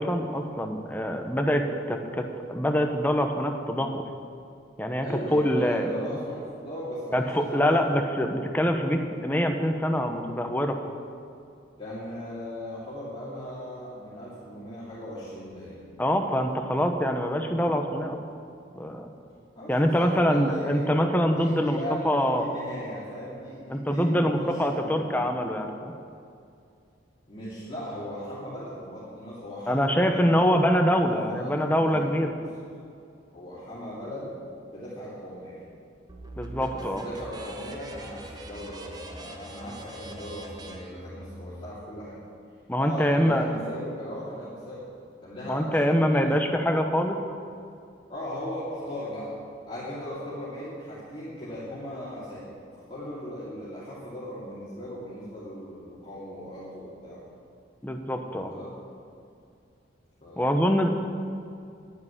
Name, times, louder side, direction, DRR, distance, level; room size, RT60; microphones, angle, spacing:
voice 1, 0.0-4.0 4.8-6.0 7.1-10.8 16.0-18.2 18.8-19.1 19.7-21.8 22.0-22.5 23.7-25.9 29.7-32.3 36.4-37.0 42.7-43.5 45.5-47.2 57.8-58.5 60.4-60.9, equal, 10° left, 4 dB, 1.0 m, -24 dB
voice 2, 5.0-7.9 11.8-15.8 19.5-21.0 21.3-25.2 27.3-32.1 33.3-34.4 34.7-35.7 36.7-42.2 42.8-44.9 45.2-46.4 48.1-57.3 58.5-58.8 60.2-60.7, equal, 30° left, -10 dB, 2.8 m, -38 dB
sound 1, 36.1-41.7, right 1 dB, 20° right, 1.2 m, -42 dB
10.0 x 9.6 x 10.0 m, 2.4 s
head